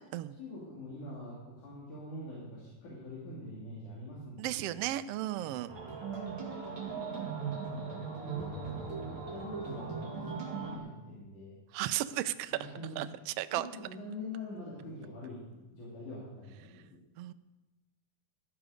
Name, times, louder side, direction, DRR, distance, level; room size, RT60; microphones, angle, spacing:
voice 1, 0.4-4.7 6.4-6.5 6.8-7.7 8.2-11.6 12.5-13.2 13.5-15.4 15.7-17.0, left 1 dB, 80° left, -6 dB, 4.4 m, -45 dB
voice 2, 4.4-5.7 11.7-12.5 13.0-13.7 17.2-17.3, right 14 dB, 90° right, 11 dB, 1.3 m, -34 dB
sound 1, 5.7-10.8, right 5 dB, 40° right, 2.9 m, -38 dB
15.5 x 12.5 x 5.1 m, 1.1 s
omnidirectional pair, 3.5 m